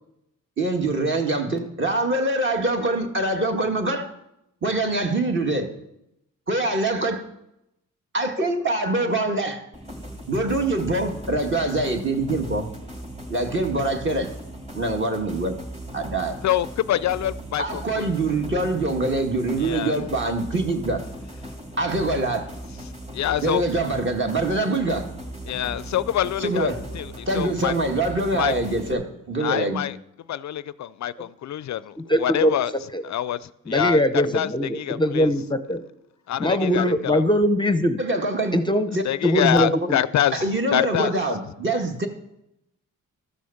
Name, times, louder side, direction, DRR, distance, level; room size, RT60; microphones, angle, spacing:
voice 1, 0.6-4.1 4.6-5.7 6.5-7.2 8.1-9.7 10.3-12.7 13.3-14.3 14.7-15.6 15.9-16.4 17.6-21.1 21.8-22.5 23.4-25.1 26.4-26.8 27.3-29.9 38.0-38.6 38.9-39.0 40.3-42.1, right 2 dB, 35° right, 1.9 m, -24 dB
sound 1, 9.7-28.9, right 1 dB, 20° right, 2.4 m, -38 dB
voice 2, 16.4-18.0 19.6-20.0 23.1-23.6 25.5-27.7 28.4-28.5 29.4-30.0 30.3-32.7 33.0-34.5 34.7-35.3 36.3-37.2 39.0-40.4 40.7-41.1, left 11 dB, 60° left, 0.4 m, -26 dB
voice 3, 32.0-32.5 32.9-33.0 33.7-35.8 36.4-38.0 38.5-39.0 39.2-40.0, equal, 15° left, 0.7 m, -21 dB
13.0 x 6.3 x 7.1 m
cardioid pair, 85°, 32 cm